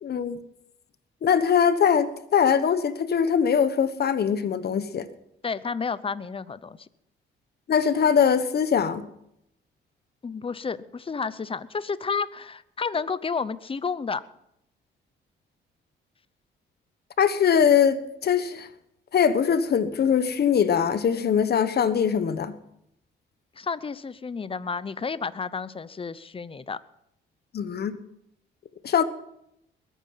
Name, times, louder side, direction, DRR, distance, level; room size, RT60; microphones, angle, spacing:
voice 1, 0.0-0.4 1.2-5.1 7.7-9.1 17.2-18.7 19.1-22.6 27.5-28.0 28.8-29.0, left 7 dB, 55° left, 1.3 m, -22 dB
voice 2, 5.4-6.9 10.2-14.2 23.6-26.8, left 5 dB, 25° left, 0.8 m, -31 dB
21.5 x 9.3 x 5.8 m
cardioid pair, 90°, 20 cm